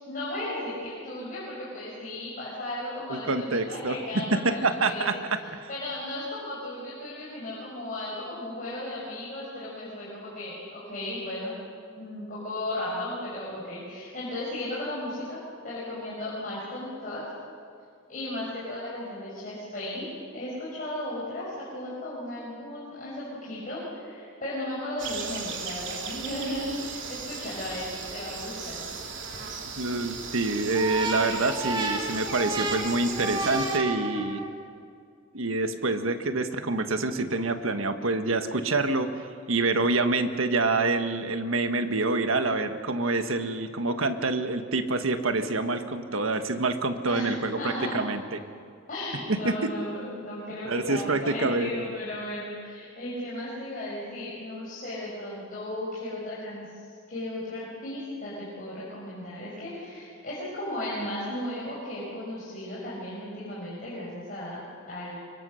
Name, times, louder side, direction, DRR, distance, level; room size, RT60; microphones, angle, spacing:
voice 1, 0.0-5.1 5.4-11.5 11.9-15.4 15.6-17.2 18.1-28.9 47.1-48.0 48.9-65.2, left 1 dB, 45° left, -7 dB, 5.7 m, -35 dB
voice 2, 3.1-4.0 4.3-5.7 29.8-34.4 35.3-39.1 39.5-48.2 49.3-49.7 50.6-51.7, right 3 dB, 85° right, 8 dB, 1.5 m, -26 dB
sound 1, 25.0-33.8, right 5 dB, 65° right, 2.9 m, -37 dB
sound 2, 30.7-34.6, right 2 dB, 25° right, 2.8 m, -31 dB
24.5 x 23.5 x 6.5 m, 2.2 s
head